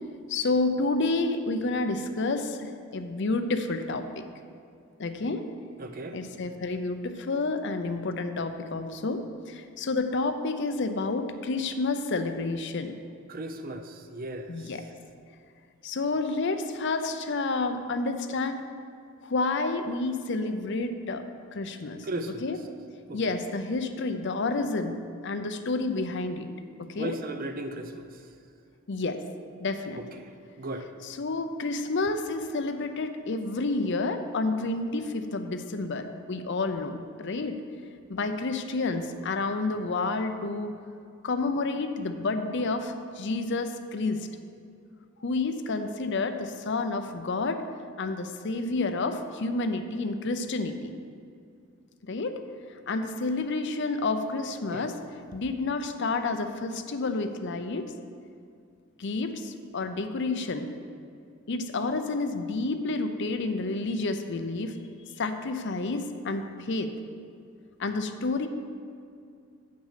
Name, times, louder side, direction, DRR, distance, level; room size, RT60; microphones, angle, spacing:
voice 1, 0.3-4.2 5.0-5.5 6.1-12.9 14.5-14.8 15.8-18.7 19.2-21.2 21.5-22.0 22.4-22.6 23.1-25.0 25.2-26.5 26.9-27.2 28.9-29.2 29.6-30.0 31.0-37.6 38.1-40.8 41.2-44.3 45.2-47.6 48.0-50.9 52.1-52.4 52.9-55.0 55.3-57.9 59.0-60.7 61.5-64.8 65.2-66.9 67.8-68.5, left 3 dB, 55° left, 8 dB, 0.6 m, -29 dB
voice 2, 5.8-6.2 13.3-14.5 22.0-22.5 23.1-23.2 27.0-28.0 30.6-30.9 54.7-54.9, right 2 dB, 40° right, 7 dB, 0.5 m, -36 dB
8.6 x 6.1 x 5.7 m, 2.4 s
head